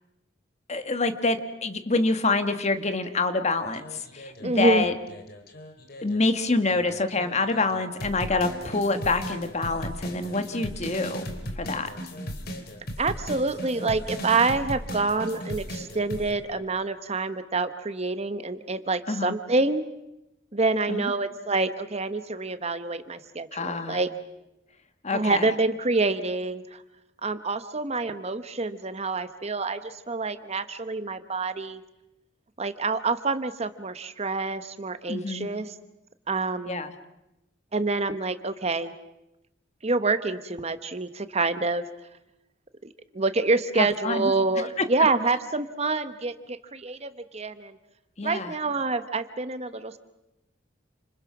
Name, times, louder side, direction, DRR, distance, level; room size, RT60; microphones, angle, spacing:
voice 1, 0.7-4.9 6.0-11.3 11.6-11.9 19.1-19.3 20.9-21.1 23.5-24.0 25.0-25.5 35.1-35.5 36.7-36.9 43.8-44.3 44.8-44.9 48.2-48.5, left 3 dB, 35° left, 8 dB, 1.6 m, -26 dB
sound 1, 3.7-6.2 6.7-16.3, equal, 55° left, 3.3 m, -37 dB
voice 2, 4.4-4.9 13.0-19.8 20.5-24.1 25.1-26.8 27.2-31.8 32.6-35.7 36.3-36.9 37.7-38.9 39.8-41.9 42.8-47.8 48.2-50.0, right 3 dB, 35° right, 11 dB, 1.1 m, -27 dB
29.5 x 27.0 x 6.0 m, 0.91 s
head